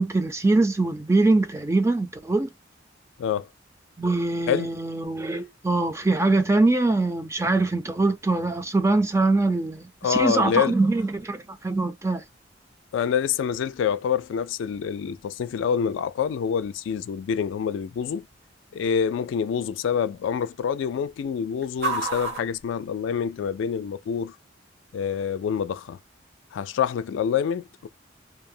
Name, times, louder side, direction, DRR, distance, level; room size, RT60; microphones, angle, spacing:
voice 1, 0.0-2.5 4.0-12.2, right 2 dB, 15° right, 0.4 m, -23 dB
sound 1, 8.8-23.6, right 3 dB, 60° right, 1.3 m, -41 dB
voice 2, 10.0-10.8 12.9-18.3 18.7-24.3 24.9-26.0 26.5-27.9, left 7 dB, 80° left, 0.3 m, -26 dB
2.7 x 2.0 x 2.6 m
head